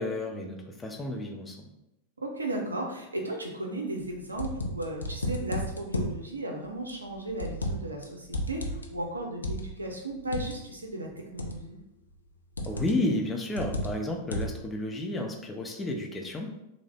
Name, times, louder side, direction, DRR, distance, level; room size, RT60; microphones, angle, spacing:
voice 1, 0.0-1.7 12.7-16.5, left 2 dB, 15° left, 2 dB, 0.5 m, -32 dB
voice 2, 2.2-11.8, right 1 dB, 80° right, 1 dB, 0.5 m, -35 dB
sound 1, 4.0-6.2 6.9-8.0 8.3-10.6 11.4-11.8 12.6-13.1 13.6-14.7, equal, 75° left, 0.4 m, -33 dB
3.2 x 2.0 x 3.6 m, 0.89 s
figure-of-eight pair, 90°, 0 cm